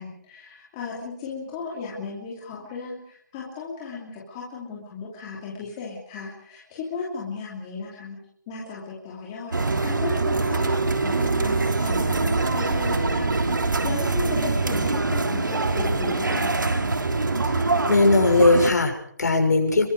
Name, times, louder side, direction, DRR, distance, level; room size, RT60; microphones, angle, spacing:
voice 1, 0.0-8.2 8.5-13.4 13.8-16.9, left 4 dB, 10° left, -4 dB, 2.8 m, -35 dB
sound 1, 9.5-18.7, right 3 dB, 85° right, 3.3 m, -24 dB
voice 2, 17.4-19.9, left 3 dB, 60° left, 3 dB, 6.6 m, -20 dB
27.5 x 23.5 x 4.9 m, 0.66 s
hypercardioid pair, 180°, 10 cm